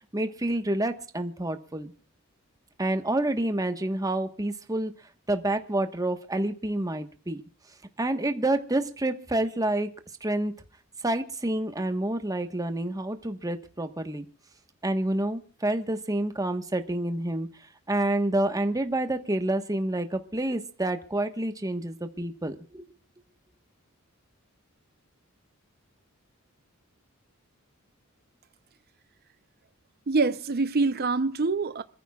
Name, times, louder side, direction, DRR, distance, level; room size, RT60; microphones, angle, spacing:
voice 1, 0.1-1.9 2.8-4.9 5.3-7.4 8.0-9.9 10.2-10.5 11.0-14.2 14.8-17.5 17.9-22.8, right 1 dB, 15° right, 1.2 m, -28 dB
voice 2, 30.1-31.8, right 3 dB, 45° right, 0.6 m, -25 dB
26.5 x 14.5 x 2.4 m
head